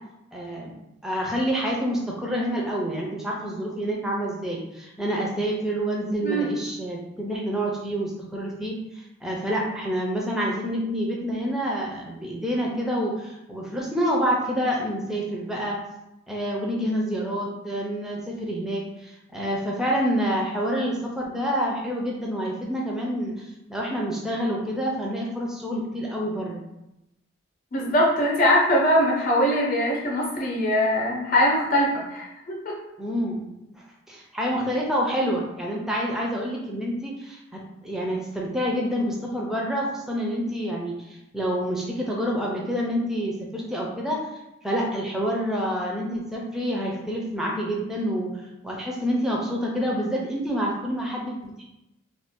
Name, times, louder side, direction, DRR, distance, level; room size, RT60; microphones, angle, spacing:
voice 1, 0.3-0.7 1.0-15.8 16.3-26.6 33.0-33.4 33.7-37.4 37.8-44.2 44.6-48.3 48.6-51.6, equal, ahead, -3 dB, 0.4 m, -27 dB
voice 2, 27.7-32.8, equal, 40° left, -3 dB, 0.7 m, -22 dB
2.5 x 2.2 x 3.5 m, 0.90 s
head